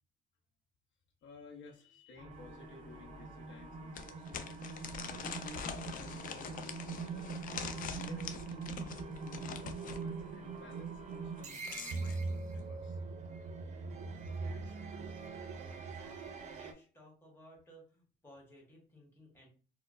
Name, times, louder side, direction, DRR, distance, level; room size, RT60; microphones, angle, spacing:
voice 1, 1.2-4.5 4.9-7.4 7.9-13.0, left 3 dB, 85° left, 1 dB, 0.7 m, -55 dB
sound 1, 2.2-16.7, right 4 dB, 40° right, 0.5 m, -42 dB
sound 2, 2.5-2.6 3.0-3.1 3.9-10.0 11.3-12.2, left 7 dB, 45° left, 0.4 m, -44 dB
voice 2, 14.2-15.4 15.9-19.5, right 1 dB, 10° left, -3 dB, 1.1 m, -58 dB
4.3 x 2.0 x 2.4 m, 0.39 s
cardioid pair, 170°, 19 cm